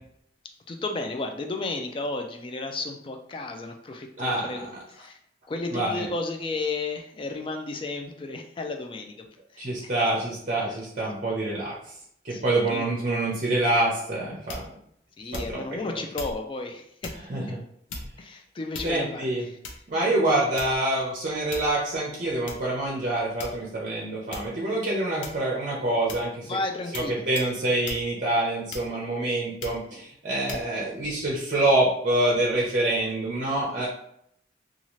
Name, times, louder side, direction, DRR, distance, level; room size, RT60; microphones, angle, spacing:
voice 1, 0.7-5.2 5.5-9.1 9.5-9.9 10.6-10.7 12.3-12.9 15.2-17.1 18.2-19.6 26.5-27.3, left 3 dB, 30° left, 4 dB, 0.3 m, -33 dB
voice 2, 4.2-4.6 5.7-6.1 9.6-11.7 12.2-14.6 15.3-15.6 17.3-17.6 18.8-19.4 19.9-26.6 26.9-33.9, right 2 dB, 45° right, -4 dB, 0.6 m, -26 dB
sound 1, 14.5-14.8 15.3-15.7 16.1-16.4 17.0-17.2 17.9-18.3 18.7-19.2 19.6-19.9 20.6-20.9 21.5-21.8 22.5-22.6 23.4-23.8 24.3-24.6 25.2-25.6 26.1-26.3 26.9-27.1 27.3-27.5 27.8-28.1 28.7-29.1 29.6-29.8 30.5-30.7, left 3 dB, 90° left, 0.5 m, -38 dB
2.7 x 2.4 x 3.0 m, 0.71 s
head